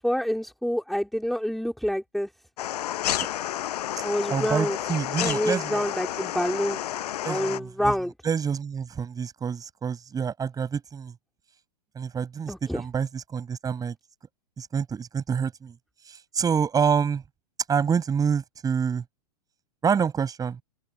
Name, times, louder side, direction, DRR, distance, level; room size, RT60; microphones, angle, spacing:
voice 1, 0.0-2.3 4.0-4.8 5.2-6.8 7.3-8.1 12.5-12.8, equal, ahead, 3.0 m, -27 dB
sound 1, 2.6-7.6, left 12 dB, 70° left, 6.1 m, -30 dB
voice 2, 4.3-5.8 7.2-7.9 8.2-11.1 11.9-13.9 14.6-15.7 16.1-17.2 17.7-19.0 19.8-20.6, right 6 dB, 15° right, 6.3 m, -27 dB
hypercardioid pair, 130°, 21 cm